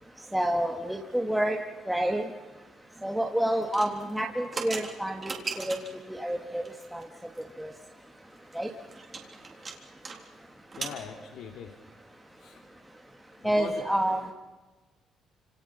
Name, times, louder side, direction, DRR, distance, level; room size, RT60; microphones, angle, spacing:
voice 1, 0.3-1.6 1.9-2.3 3.0-5.8 6.1-7.1 7.4-7.7 8.5-8.7 13.4-14.3, right 1 dB, ahead, 0 dB, 1.7 m, -29 dB
sound 1, 3.6-6.0 6.7-7.0 7.4-7.5 7.7-7.8 8.2-10.2 10.4-11.0, right 4 dB, 25° right, 3.6 m, -38 dB
voice 2, 10.8-11.7 12.4-12.6 13.4-13.7 14.2-14.3, left 7 dB, 75° left, 3 dB, 2.7 m, -41 dB
29.5 x 27.5 x 5.9 m, 1.2 s
cardioid pair, 170°, 0 cm